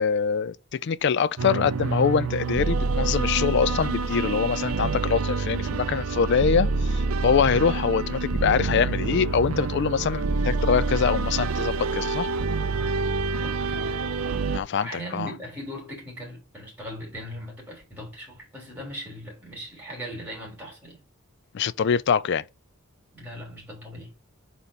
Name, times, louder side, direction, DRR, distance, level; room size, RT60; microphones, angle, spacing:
voice 1, 0.0-12.3 14.5-15.3 21.5-22.4, left 6 dB, 55° left, 0.4 m, -24 dB
sound 1, 1.4-14.6, right 3 dB, 75° right, 0.5 m, -27 dB
voice 2, 13.3-13.9 14.7-21.0 23.1-24.1, equal, 10° right, 3.3 m, -39 dB
4.5 x 4.2 x 5.2 m
head